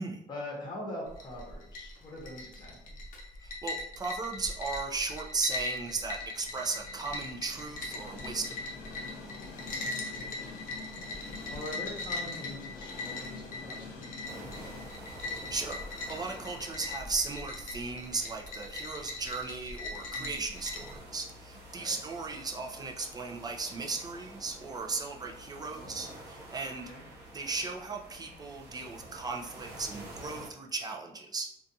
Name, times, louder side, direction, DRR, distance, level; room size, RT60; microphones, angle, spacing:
voice 1, 0.3-3.0 9.9-10.6 11.4-14.8 20.1-20.5 21.7-22.0 26.7-27.0, left 1 dB, 25° left, -2 dB, 0.9 m, -43 dB
sound 1, 1.1-21.0, left 3 dB, 55° left, 0.6 m, -40 dB
voice 2, 3.4-8.6 15.3-26.9 27.3-31.5, right 4 dB, 25° right, 1 dB, 0.4 m, -36 dB
Train, 4.2-22.1, left 3 dB, 90° left, 0.7 m, -49 dB
sound 2, 14.2-30.5, right 1 dB, 80° right, 0.9 m, -49 dB
2.4 x 2.3 x 2.6 m, 0.74 s
cardioid pair, 110°, 17 cm